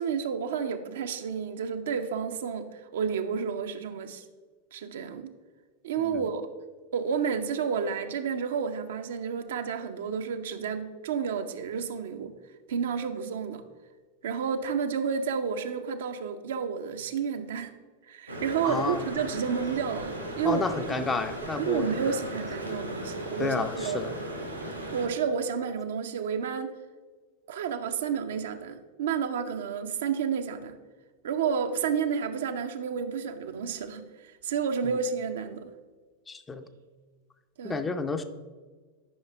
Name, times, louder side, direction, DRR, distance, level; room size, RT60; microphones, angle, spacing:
voice 1, 0.0-4.2 4.7-5.3 5.8-6.5 6.9-12.3 12.7-13.6 14.2-17.7 18.1-20.7 21.0-21.1 21.6-24.0 24.9-26.7 27.5-30.8 31.2-35.7 37.6-37.8, right 6 dB, 60° right, 7 dB, 0.6 m, -31 dB
sound 1, 18.3-25.1, right 1 dB, 90° right, 1.4 m, -37 dB
voice 2, 18.6-19.0 20.4-22.2 23.4-24.1 36.3-36.6 37.6-38.2, left 4 dB, 15° left, 8 dB, 0.6 m, -31 dB
11.0 x 5.6 x 3.4 m, 1.4 s
figure-of-eight pair, 90°, 0 cm